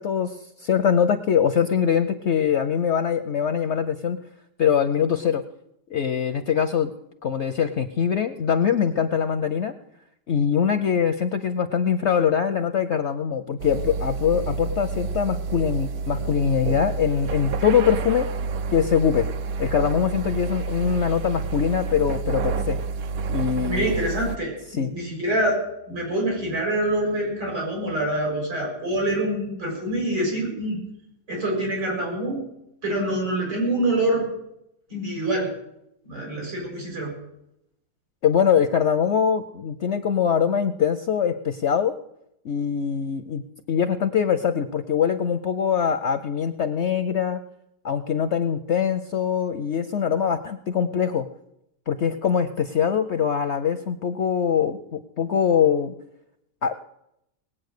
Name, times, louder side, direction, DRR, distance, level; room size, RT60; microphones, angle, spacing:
voice 1, 0.0-4.2 4.6-5.4 5.9-6.9 7.2-9.7 10.3-18.3 18.7-19.3 19.6-22.8 23.3-23.9 24.7-24.9 38.2-42.0 42.4-43.4 43.7-47.4 47.8-51.3 51.9-55.9 56.6-56.7, left 7 dB, 60° left, 9 dB, 0.7 m, -23 dB
sound 1, 13.6-24.4, right 4 dB, 65° right, 1.1 m, -29 dB
voice 2, 23.7-25.6 25.9-30.8 31.3-32.4 32.8-34.3 34.9-35.5 36.0-37.1, right 1 dB, 85° right, -2 dB, 7.6 m, -25 dB
19.0 x 8.7 x 6.6 m, 0.80 s
omnidirectional pair, 1.8 m